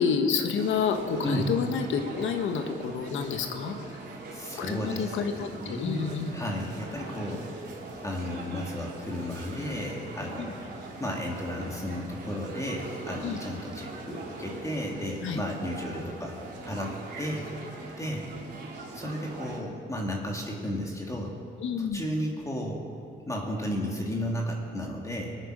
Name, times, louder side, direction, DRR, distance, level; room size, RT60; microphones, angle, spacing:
voice 1, 0.0-4.0 4.6-6.3 10.4-10.5 13.2-13.4 15.2-15.4 21.6-22.0, left 6 dB, 80° left, 6 dB, 1.4 m, -29 dB
sound 1, 0.5-19.6, right 2 dB, 55° right, 3.4 m, -42 dB
voice 2, 4.3-7.7 8.0-10.6 11.0-16.4 16.6-17.5 18.0-18.3 18.9-21.3 21.8-22.9 23.3-25.3, equal, 15° left, -1 dB, 2.3 m, -33 dB
20.5 x 9.1 x 6.4 m, 2.5 s
cardioid pair, 90°, 20 cm